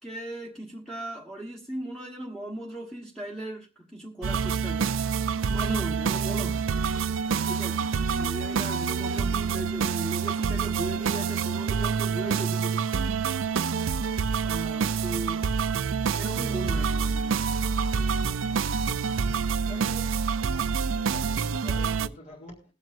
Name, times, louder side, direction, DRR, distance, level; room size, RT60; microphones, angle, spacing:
voice 1, 0.0-5.0 5.5-6.7 7.4-12.9 14.4-15.4 16.1-17.6, right 1 dB, 5° left, 1.4 m, -37 dB
sound 1, 4.2-22.1, right 6 dB, 75° right, 0.5 m, -27 dB
voice 2, 19.5-20.2 20.5-22.7, left 1 dB, 40° left, 1.9 m, -46 dB
20.5 x 7.5 x 2.6 m
head